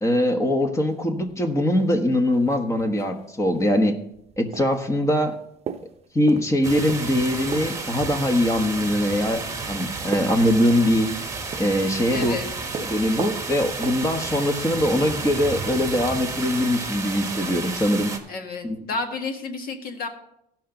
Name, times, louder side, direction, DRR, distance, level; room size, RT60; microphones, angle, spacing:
voice 1, 0.0-4.0 4.4-5.4 6.1-9.4 9.7-11.1 11.6-12.4 12.8-18.1 18.6-18.8, left 1 dB, 15° left, 6 dB, 1.3 m, -22 dB
sound 1, 0.9-1.3 1.8-1.9 2.2-3.2 3.5-3.8 4.1-4.8 5.1-7.9 8.7-11.3 11.5-11.9 12.2-14.2, right 7 dB, 40° right, 0.7 m, -37 dB
sound 2, 6.6-18.2, right 4 dB, 20° right, 1.5 m, -32 dB
voice 2, 12.1-12.5 18.3-20.1, left 4 dB, 60° left, 5 dB, 1.7 m, -31 dB
16.5 x 5.9 x 3.9 m, 0.76 s
cardioid pair, 110°, 17 cm